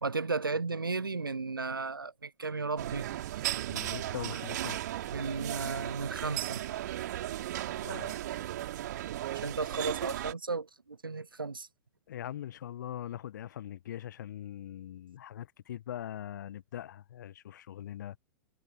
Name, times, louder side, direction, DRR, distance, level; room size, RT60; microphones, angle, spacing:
voice 1, 0.0-3.1 4.3-4.4 5.1-6.6 9.3-11.7, right 4 dB, 85° right, 0.5 m, -34 dB
sound 1, 2.8-10.3, right 13 dB, 55° right, 3.2 m, -36 dB
voice 2, 3.7-4.8 7.8-8.1 12.1-18.2, left 11 dB, 60° left, 1.3 m, -41 dB
figure-of-eight pair, 100°, 11 cm